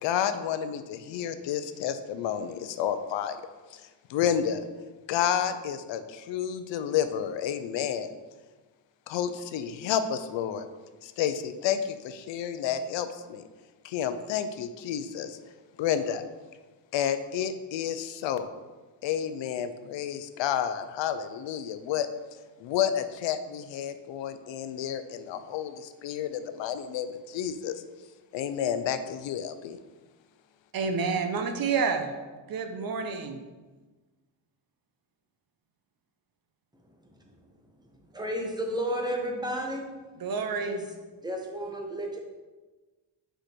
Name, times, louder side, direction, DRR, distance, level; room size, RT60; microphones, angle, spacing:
voice 1, 0.0-3.4 3.7-4.6 5.1-8.1 9.1-10.7 11.0-13.5 13.8-15.4 15.8-16.2 16.9-18.5 19.0-22.1 22.6-27.8 28.3-29.8, left 9 dB, 80° left, 0.6 m, -30 dB
voice 2, 30.7-32.1 32.5-33.4 40.2-40.8, right 5 dB, 50° right, 0.8 m, -29 dB
voice 3, 38.1-39.8 40.6-40.8 41.2-42.2, equal, 10° right, 1.0 m, -32 dB
5.0 x 4.9 x 4.5 m
cardioid pair, 115°, 44 cm